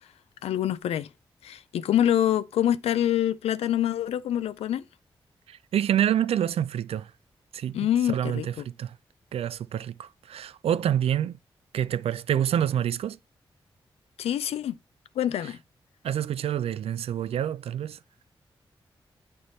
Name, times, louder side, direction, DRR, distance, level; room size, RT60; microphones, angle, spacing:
voice 1, 0.4-1.1 1.4-4.8 7.7-8.5 14.2-14.7 15.2-15.6, left 11 dB, 85° left, 0.4 m, -25 dB
voice 2, 5.5-7.1 7.5-9.0 9.3-11.4 11.7-13.2 16.0-18.0, right 10 dB, 75° right, 0.4 m, -27 dB
8.7 x 3.3 x 4.0 m
supercardioid pair, 45°, 10 cm